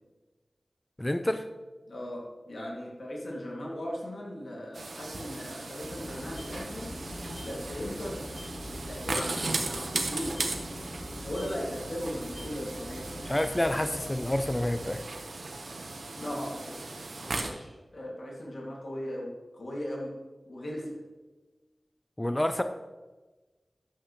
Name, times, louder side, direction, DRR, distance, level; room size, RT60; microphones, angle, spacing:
voice 1, 1.0-1.4 13.3-15.0 22.2-22.6, left 1 dB, 20° left, 9 dB, 0.5 m, -28 dB
voice 2, 1.9-6.9 7.4-10.4 11.2-13.2 16.2-20.1 20.5-21.0, equal, 75° left, -3 dB, 2.3 m, -38 dB
sound 1, 4.7-17.5, right 3 dB, 90° right, 1.1 m, -37 dB
Pip-Sound, 5.8-14.9, left 1 dB, 45° left, 2.2 m, -43 dB
12.0 x 8.0 x 3.1 m, 1.2 s
wide cardioid pair, 75°, 0 cm